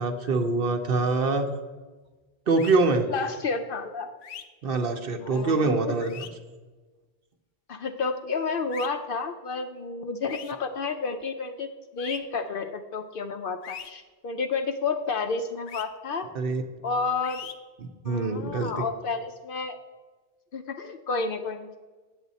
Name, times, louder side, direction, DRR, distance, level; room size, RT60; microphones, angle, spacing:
voice 1, 0.0-1.5 2.5-3.1 4.6-6.3 16.3-16.6 18.0-18.9, right 3 dB, 55° right, 6 dB, 0.9 m, -24 dB
sound 1, 2.6-2.8 4.2-4.4 6.0-6.3 8.7-8.9 10.3-10.5 12.0-12.2 13.6-13.9 15.7-15.8 17.2-17.5, left 9 dB, 90° left, 1.0 m, -40 dB
voice 2, 3.1-4.1 5.2-6.0 7.7-16.3 16.8-17.6 18.0-19.8 20.5-21.7, left 4 dB, 60° left, 7 dB, 0.6 m, -31 dB
8.6 x 8.1 x 4.1 m, 1.3 s
omnidirectional pair, 1.2 m